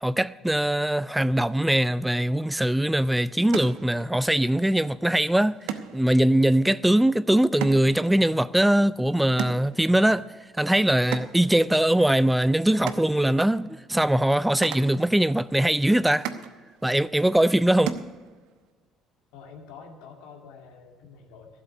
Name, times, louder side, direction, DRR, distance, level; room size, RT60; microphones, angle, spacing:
voice 1, 0.0-10.2 10.6-16.3 16.8-18.0, right 1 dB, 5° right, 0.3 m, -22 dB
sound 1, 2.6-18.7, right 9 dB, 80° right, 0.9 m, -40 dB
voice 2, 19.3-21.6, left 5 dB, 80° left, 2.1 m, -47 dB
12.0 x 7.5 x 10.0 m
supercardioid pair, 70°, 0 cm